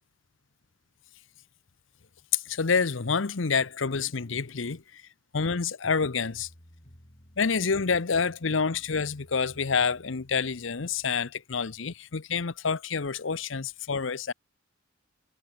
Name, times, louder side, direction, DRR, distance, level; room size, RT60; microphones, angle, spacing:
voice 1, 2.3-5.0 5.3-6.5 7.4-14.3, left 5 dB, 75° left, 0.8 m, -28 dB
sound 1, 5.8-11.2, equal, 35° left, 4.3 m, -55 dB
head